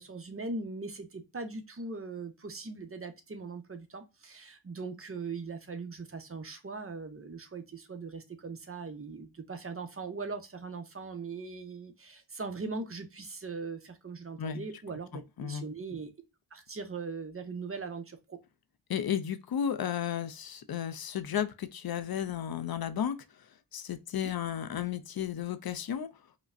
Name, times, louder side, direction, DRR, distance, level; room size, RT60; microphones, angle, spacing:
voice 1, 0.0-16.1 16.5-18.4 24.2-24.3, right 4 dB, 35° right, 0.7 m, -40 dB
voice 2, 18.9-26.1, left 9 dB, 60° left, 0.5 m, -33 dB
4.9 x 2.1 x 2.4 m
cardioid pair, 65°, 41 cm